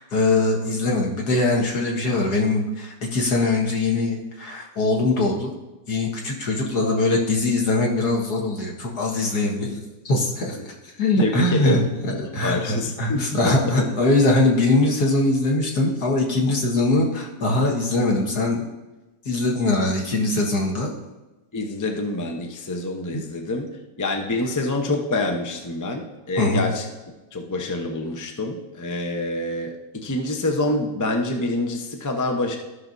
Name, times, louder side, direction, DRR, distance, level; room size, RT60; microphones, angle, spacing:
voice 1, 0.0-5.5 5.9-9.8 10.0-10.7 11.0-18.7 19.3-20.9 23.1-23.2 26.4-26.7, left 2 dB, 65° left, -1 dB, 1.9 m, -22 dB
voice 2, 11.2-11.7 12.1-13.8 21.5-23.7 24.0-26.8 27.3-32.6, left 2 dB, 30° left, 3 dB, 0.3 m, -27 dB
14.0 x 6.0 x 2.6 m, 1.1 s
omnidirectional pair, 1.9 m